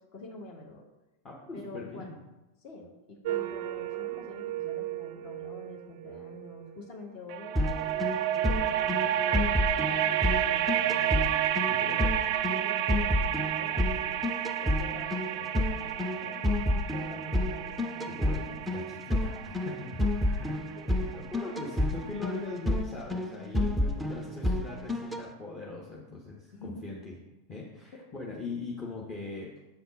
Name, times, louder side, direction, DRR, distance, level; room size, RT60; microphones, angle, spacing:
voice 1, 0.1-0.8 1.5-2.1 2.6-11.2 11.8-12.2 12.5-14.3 14.6-18.6 20.8-21.0 26.5-26.9 27.9-28.0, left 2 dB, 45° left, 0 dB, 1.6 m, -46 dB
voice 2, 1.2-2.2 11.7-11.9 18.1-18.4 18.7-27.1 27.5-29.5, left 3 dB, 25° left, -3 dB, 1.1 m, -41 dB
sound 1, 3.3-6.5 7.3-22.2, right 11 dB, 45° right, 0.3 m, -31 dB
sound 2, 7.6-25.2, left 1 dB, ahead, 0.6 m, -30 dB
7.0 x 4.2 x 5.4 m, 1.0 s
figure-of-eight pair, 90°, 0 cm